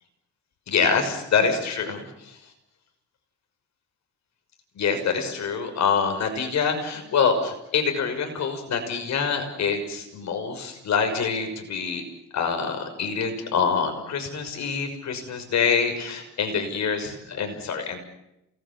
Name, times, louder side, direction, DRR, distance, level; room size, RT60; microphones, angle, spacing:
voice 1, 0.7-2.0 4.8-12.0 12.3-18.0, left 6 dB, 65° left, 6 dB, 6.0 m, -25 dB
28.0 x 20.0 x 7.5 m, 0.87 s
cardioid pair, 90°, 30 cm